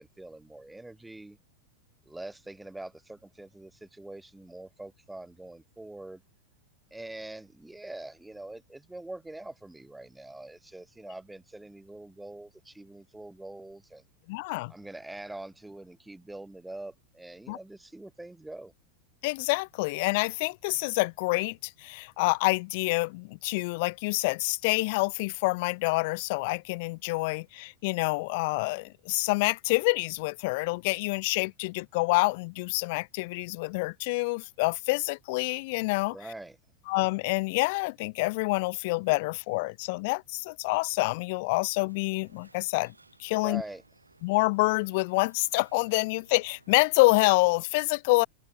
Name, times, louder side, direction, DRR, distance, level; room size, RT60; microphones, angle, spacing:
voice 1, 0.0-1.4 2.1-6.2 6.9-14.0 14.7-18.7 36.1-36.6 43.3-43.8, right 2 dB, 5° right, 0.8 m, -44 dB
voice 2, 14.3-14.7 17.5-17.6 19.2-36.2 36.9-42.9 43.2-43.6 44.2-48.3, left 26 dB, 50° left, 0.4 m, -27 dB
sound 1, 41.9-47.4, right 3 dB, 80° right, 6.6 m, -61 dB
figure-of-eight pair, 90°, 0 cm